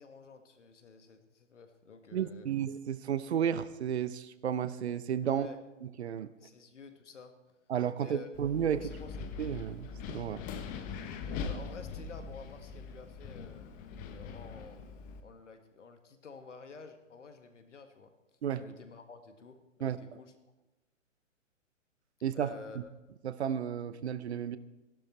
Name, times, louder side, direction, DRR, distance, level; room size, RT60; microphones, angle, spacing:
voice 1, 0.0-2.5 5.3-5.6 6.4-7.3 7.9-8.3 8.7-9.3 11.4-13.7 14.1-14.8 15.2-18.1 18.6-20.3 22.3-22.9, left 5 dB, 70° left, 7 dB, 1.8 m, -50 dB
voice 2, 2.1-5.5 5.8-6.3 7.7-8.9 9.4-10.4 18.4-18.6 19.8-20.0 22.2-22.8 23.2-24.6, right 9 dB, 60° right, 15 dB, 0.8 m, -33 dB
Wind, 8.3-15.2, left 5 dB, 20° left, 1.0 m, -42 dB
16.0 x 12.0 x 4.4 m, 1.0 s
figure-of-eight pair, 120°, 38 cm